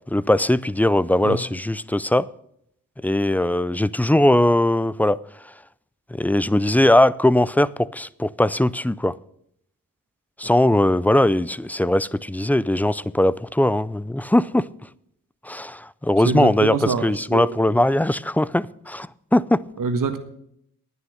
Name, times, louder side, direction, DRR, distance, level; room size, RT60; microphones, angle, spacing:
voice 1, 0.1-2.3 3.0-5.2 6.1-9.1 10.4-14.7 15.4-19.6, left 1 dB, 5° left, 0.4 m, -20 dB
voice 2, 16.2-17.6 19.8-20.2, right 5 dB, 65° right, 1.5 m, -25 dB
9.7 x 9.2 x 6.4 m
cardioid pair, 50°, 35 cm